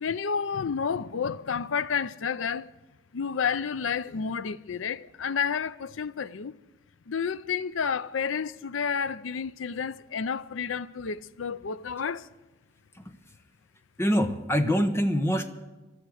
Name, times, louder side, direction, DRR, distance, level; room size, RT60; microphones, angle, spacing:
voice 1, 0.0-2.7 3.1-6.5 7.1-12.3, left 6 dB, 80° left, 0.5 m, -30 dB
voice 2, 14.0-15.5, equal, 15° left, 0.9 m, -25 dB
15.0 x 12.0 x 6.4 m
head